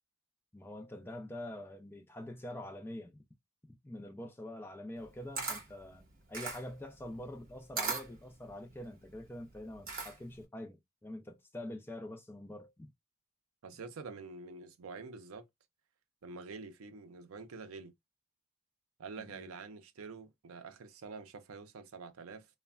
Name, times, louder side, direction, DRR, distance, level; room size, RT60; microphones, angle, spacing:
voice 1, 0.5-3.2 3.8-12.9 19.2-19.5, left 1 dB, 10° left, 0.4 m, -45 dB
Camera, 5.0-10.4, right 4 dB, 40° right, 0.9 m, -40 dB
voice 2, 13.6-15.5 16.2-17.9 19.0-22.5, right 4 dB, 70° right, 0.5 m, -47 dB
3.2 x 2.1 x 2.3 m
head